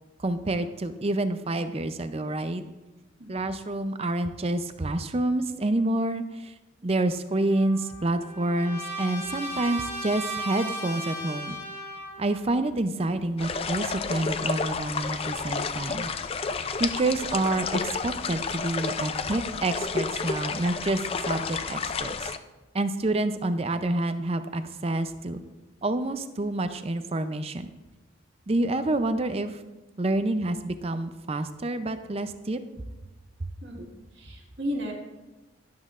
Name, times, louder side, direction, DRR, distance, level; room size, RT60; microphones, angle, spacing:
voice 1, 0.2-2.6 3.3-6.5 6.8-11.6 12.2-16.1 16.8-21.0 21.3-22.3 22.7-25.4 25.8-27.7 28.5-29.5 30.0-32.6, right 2 dB, 30° right, 10 dB, 0.5 m, -28 dB
Trumpet, 7.5-12.4, equal, 15° left, 2.9 m, -36 dB
sound 1, 13.4-22.4, left 5 dB, 30° left, 0.3 m, -31 dB
voice 2, 33.6-34.9, equal, 60° right, -3 dB, 1.7 m, -34 dB
11.5 x 11.5 x 2.5 m, 1.1 s
head